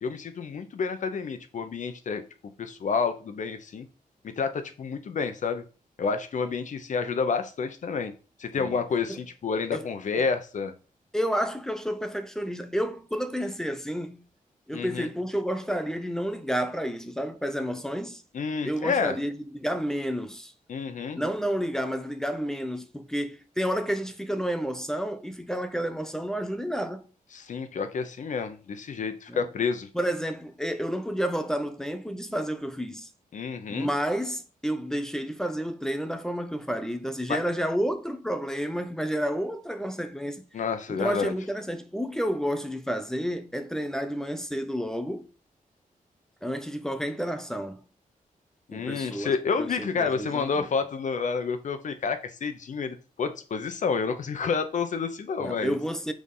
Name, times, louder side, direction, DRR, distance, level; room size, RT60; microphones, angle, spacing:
voice 1, 0.0-2.2 2.6-3.9 4.2-5.6 6.0-8.1 8.4-10.7 14.7-15.1 18.3-19.2 20.7-21.2 27.3-29.9 33.3-33.9 37.3-37.4 40.5-41.3 48.7-55.8, left 5 dB, 60° left, 0.9 m, -29 dB
voice 2, 11.1-14.2 14.7-18.2 18.6-20.5 21.1-27.1 29.3-29.5 29.9-33.1 33.7-40.4 40.9-45.3 46.4-47.8 48.7-50.7 55.4-56.1, equal, 5° left, 0.6 m, -30 dB
6.4 x 3.6 x 5.5 m
wide cardioid pair, 155°, 14 cm